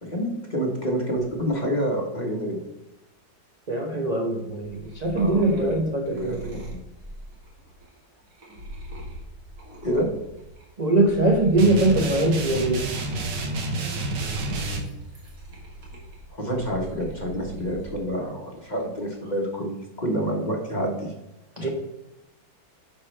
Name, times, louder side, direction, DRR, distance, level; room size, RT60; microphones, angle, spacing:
voice 1, 0.0-2.6 5.1-5.7 6.1-6.4 6.7-6.8 9.8-10.1 16.3-21.1 21.6-21.7, equal, 25° left, -1 dB, 1.3 m, -28 dB
voice 2, 3.7-6.6 10.8-12.8 21.6-21.7, right 2 dB, 30° right, 0 dB, 0.8 m, -22 dB
sound 1, 4.6-10.6 11.0-18.0 18.4-19.0, equal, 50° right, 2.3 m, -41 dB
sound 2, 11.6-14.8, right 2 dB, 65° right, 1.8 m, -29 dB
10.5 x 5.2 x 3.3 m, 0.93 s
omnidirectional pair, 2.1 m